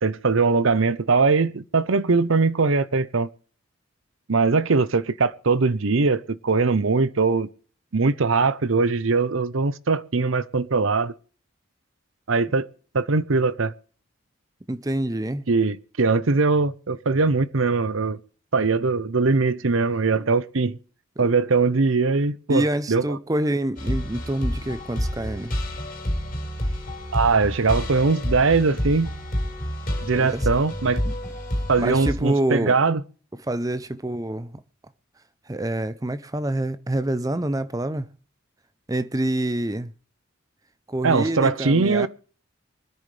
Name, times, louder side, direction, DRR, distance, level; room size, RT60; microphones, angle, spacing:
voice 1, 0.0-3.3 4.3-7.5 7.9-11.1 12.3-12.7 12.9-13.7 15.5-18.2 18.5-20.8 21.2-23.2 27.1-29.1 30.0-31.0 31.7-33.0 41.0-42.1, right 4 dB, 75° right, 0.7 m, -21 dB
voice 2, 14.7-15.4 21.2-21.3 22.5-25.5 30.1-30.5 31.0-31.1 31.8-32.8 33.5-34.5 35.5-38.1 38.9-39.9 40.9-42.1, right 1 dB, 15° right, 0.5 m, -26 dB
sound 1, 23.8-32.1, equal, 40° left, 4.9 m, -29 dB
24.5 x 10.0 x 3.3 m
head